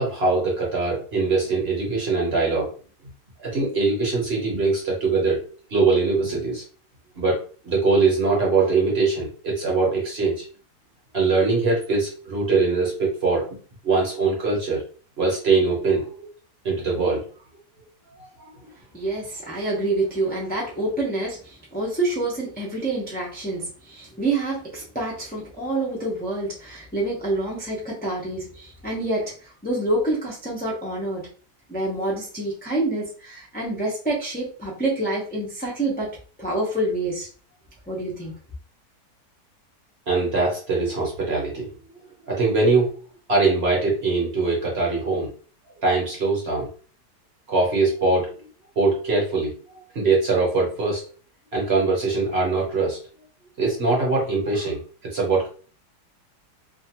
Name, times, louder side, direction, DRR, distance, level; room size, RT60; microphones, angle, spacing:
voice 1, 0.0-2.7 3.4-5.4 5.7-6.6 7.2-10.4 11.1-13.5 13.8-14.8 15.2-16.3 16.6-17.2 40.1-41.7 42.3-42.9 43.3-45.3 45.8-46.7 47.5-48.3 48.8-49.5 49.9-51.0 51.5-53.0 53.6-55.5, right 3 dB, 45° right, -3 dB, 1.1 m, -22 dB
voice 2, 18.9-29.4 29.6-31.3 31.7-36.1 36.4-37.3 37.9-38.3, right 2 dB, 10° left, -5 dB, 0.5 m, -27 dB
2.8 x 2.4 x 2.9 m, 0.40 s
omnidirectional pair, 1.7 m